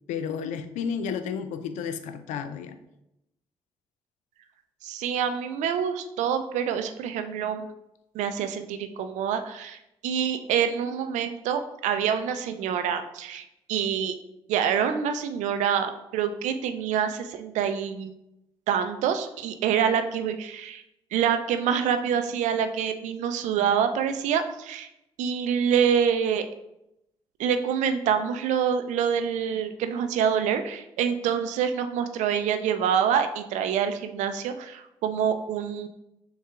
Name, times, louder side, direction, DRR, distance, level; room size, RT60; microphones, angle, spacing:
voice 1, 0.1-2.8, left 6 dB, 75° left, 10 dB, 0.4 m, -32 dB
voice 2, 4.8-7.7 8.1-14.1 14.5-18.1 18.7-20.8 21.1-24.9 25.2-26.4 27.4-35.9, right 8 dB, 75° right, 8 dB, 0.4 m, -26 dB
6.4 x 2.4 x 3.4 m, 0.86 s
hypercardioid pair, 45°, 12 cm